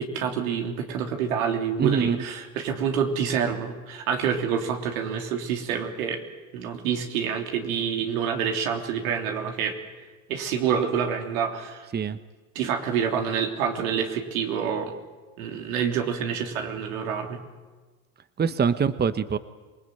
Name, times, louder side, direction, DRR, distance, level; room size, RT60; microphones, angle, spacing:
voice 1, 0.0-6.2 6.5-9.8 10.3-11.9 12.5-14.9 15.4-17.4, right 7 dB, 80° right, 3 dB, 3.4 m, -27 dB
voice 2, 1.8-2.2 11.9-12.2 18.4-19.4, right 6 dB, 25° right, 12 dB, 1.1 m, -24 dB
27.0 x 20.0 x 9.2 m, 1.4 s
hypercardioid pair, 80°, 41 cm